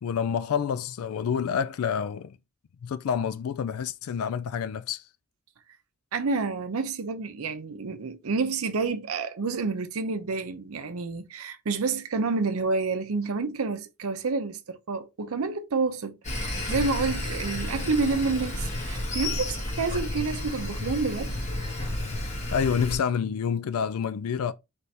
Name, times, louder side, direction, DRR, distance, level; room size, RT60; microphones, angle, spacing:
voice 1, 0.0-2.4 2.8-5.0 22.5-24.5, left 7 dB, 80° left, 0.4 m, -28 dB
voice 2, 6.1-21.3, right 4 dB, 80° right, 0.6 m, -29 dB
Sawing, 16.2-23.0, left 1 dB, 35° left, 1.1 m, -31 dB
4.2 x 3.4 x 3.2 m
head